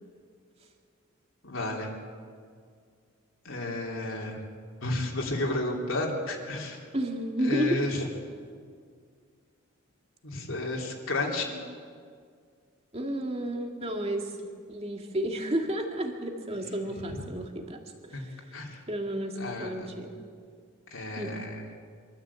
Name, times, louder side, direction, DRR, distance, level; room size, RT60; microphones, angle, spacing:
voice 1, 1.4-1.9 3.4-4.4 4.8-6.9 7.4-8.0 10.2-11.6 18.1-18.2 18.5-18.8 19.4-19.9 20.9-21.6, left 2 dB, 70° left, -1 dB, 3.2 m, -32 dB
voice 2, 6.9-7.9 12.9-14.3 14.7-18.3 18.9-20.1 21.2-21.4, right 1 dB, 30° right, 2 dB, 2.2 m, -32 dB
24.5 x 13.5 x 8.4 m, 2.1 s
head